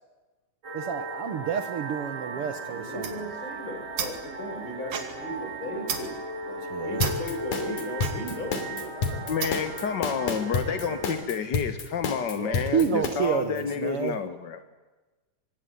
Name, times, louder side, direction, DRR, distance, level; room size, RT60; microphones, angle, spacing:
sound 1, 0.6-11.1, right 2 dB, 35° right, 7.6 m, -37 dB
voice 1, 0.7-3.1 6.7-7.0 12.4-14.2, right 7 dB, 60° right, 9 dB, 1.7 m, -29 dB
voice 2, 2.2-9.9 10.3-11.4 14.6-14.7, equal, 40° left, 2 dB, 7.2 m, -38 dB
sound 2, 2.9-9.8, right 7 dB, 80° right, 4.0 m, -37 dB
sound 3, 7.0-13.1, left 4 dB, 85° left, 4.5 m, -29 dB
voice 3, 9.3-14.6, left 7 dB, 55° left, 9 dB, 1.2 m, -30 dB
25.5 x 22.5 x 9.6 m, 1.2 s
omnidirectional pair, 3.7 m